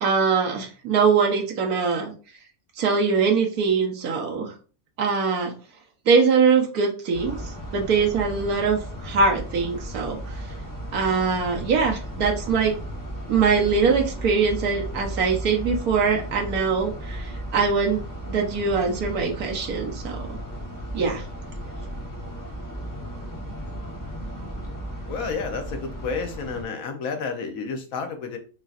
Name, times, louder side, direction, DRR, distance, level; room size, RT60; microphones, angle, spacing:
voice 1, 0.0-2.1 2.8-4.5 5.0-5.5 6.1-10.2 10.9-12.7 13.3-20.4 20.9-21.2, right 5 dB, 85° right, 1 dB, 1.4 m, -22 dB
sound 1, 7.1-26.6, right 1 dB, 15° left, 0.7 m, -35 dB
voice 2, 25.1-28.4, left 5 dB, 70° left, 6 dB, 1.2 m, -30 dB
5.9 x 2.7 x 2.4 m, 0.37 s
omnidirectional pair, 1.5 m